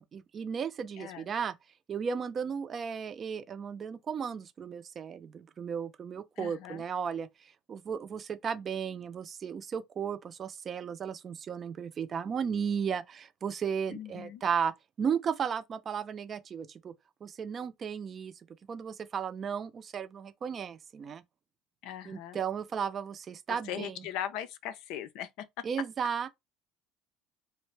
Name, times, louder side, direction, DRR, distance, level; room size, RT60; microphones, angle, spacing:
voice 1, 0.0-1.5 1.9-16.9 17.2-18.3 18.7-21.2 22.0-24.0 25.6-26.3, right 7 dB, 40° right, 0.5 m, -35 dB
voice 2, 1.0-1.3 6.4-6.8 13.9-14.4 21.8-22.4 23.5-25.6, left 11 dB, 70° left, 0.5 m, -39 dB
2.5 x 2.1 x 3.2 m
supercardioid pair, 90°, 0 cm